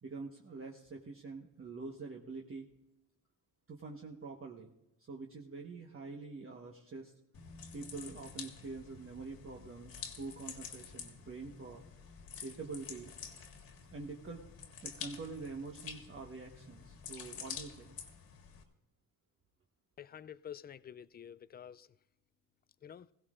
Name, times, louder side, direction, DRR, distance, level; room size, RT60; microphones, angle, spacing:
voice 1, 0.0-2.7 3.7-4.7 5.1-7.1 7.7-11.8 12.4-13.1 13.9-14.5 14.8-18.0, right 4 dB, 35° right, 1.3 m, -46 dB
sound 1, 7.3-18.6, left 7 dB, 70° left, 1.8 m, -49 dB
voice 2, 20.0-21.9 22.8-23.1, left 9 dB, 25° left, 0.4 m, -49 dB
16.5 x 16.0 x 2.5 m
supercardioid pair, 70°, 37 cm